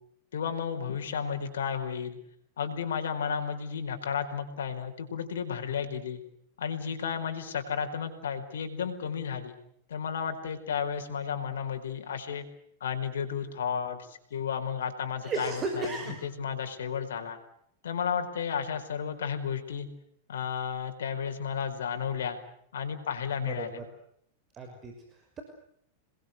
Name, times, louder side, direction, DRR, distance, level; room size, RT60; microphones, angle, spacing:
voice 1, 0.3-2.2 2.6-6.2 6.6-9.6 9.9-12.4 12.8-17.4 17.8-19.9 20.3-22.4 22.7-23.8, left 7 dB, 80° left, 6 dB, 4.8 m, -33 dB
voice 2, 15.2-16.2 23.4-23.8 24.5-25.4, right 3 dB, 30° right, 5 dB, 5.9 m, -35 dB
28.0 x 21.5 x 8.1 m, 0.69 s
hypercardioid pair, 105°, 0 cm